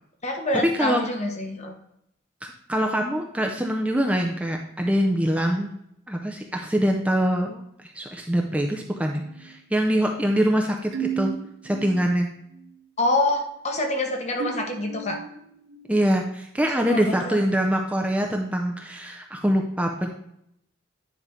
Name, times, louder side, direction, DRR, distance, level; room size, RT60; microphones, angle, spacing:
voice 1, 0.2-1.7 13.0-15.2 16.9-17.4, left 2 dB, 35° left, 3 dB, 1.1 m, -26 dB
voice 2, 2.4-5.7 6.1-7.6 8.0-11.3 11.6-12.3 15.9-20.1, equal, 5° right, 2 dB, 0.5 m, -24 dB
sound 1, 9.1-12.1 12.5-12.9 14.4-16.3, right 7 dB, 85° right, 0.9 m, -36 dB
9.8 x 3.3 x 5.0 m, 0.75 s
head